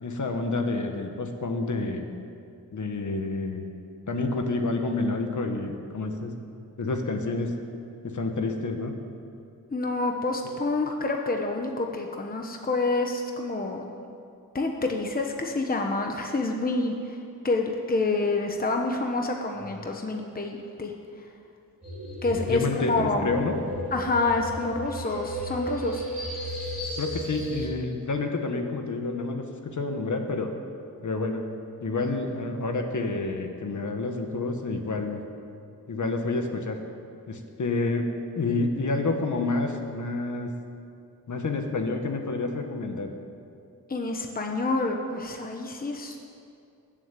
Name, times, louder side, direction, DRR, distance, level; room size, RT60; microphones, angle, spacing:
voice 1, 0.0-2.1 2.7-3.7 4.1-6.3 6.8-7.6 8.0-8.9 22.5-23.6 27.0-29.4 29.7-30.5 31.0-31.4 31.8-35.2 35.9-36.8 37.3-38.1 38.3-40.5 41.3-43.1, left 3 dB, 55° left, 4 dB, 1.5 m, -29 dB
voice 2, 9.7-13.9 14.5-17.2 17.4-20.9 22.2-23.3 23.9-26.0 43.9-46.3, left 3 dB, 25° left, 2 dB, 1.1 m, -28 dB
sound 1, 21.8-27.7, right 1 dB, 20° right, 4.7 m, -33 dB
20.5 x 7.6 x 9.1 m, 2.5 s
wide cardioid pair, 165°, 35 cm